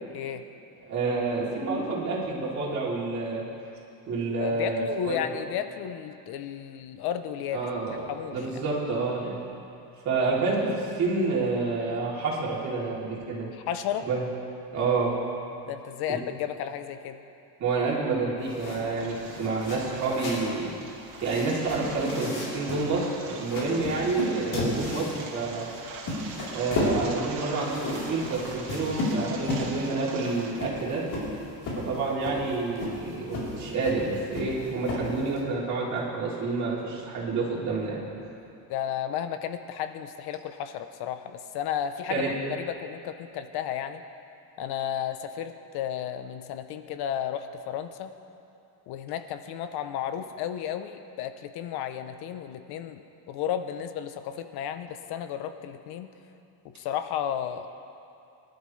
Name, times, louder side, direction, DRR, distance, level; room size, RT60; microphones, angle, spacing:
voice 1, 0.1-0.4 4.4-7.7 8.1-8.6 13.5-14.1 15.7-17.2 38.7-44.0 44.6-48.1 48.9-56.1 56.8-57.7, left 10 dB, 70° left, 9 dB, 0.8 m, -33 dB
voice 2, 0.9-3.4 4.1-5.2 7.5-8.0 8.3-9.4 10.0-13.5 14.1-14.2 14.7-15.1 17.6-20.7 21.2-25.6 26.5-27.8 28.1-31.0 31.8-38.0 42.1-42.3, right 3 dB, 45° right, -5 dB, 3.2 m, -28 dB
sound 1, 18.4-35.4, left 1 dB, 50° left, 3.9 m, -34 dB
sound 2, 19.0-30.6, right 4 dB, 60° right, 2.3 m, -43 dB
23.0 x 12.0 x 3.3 m, 2.6 s
cardioid pair, 160°, 40 cm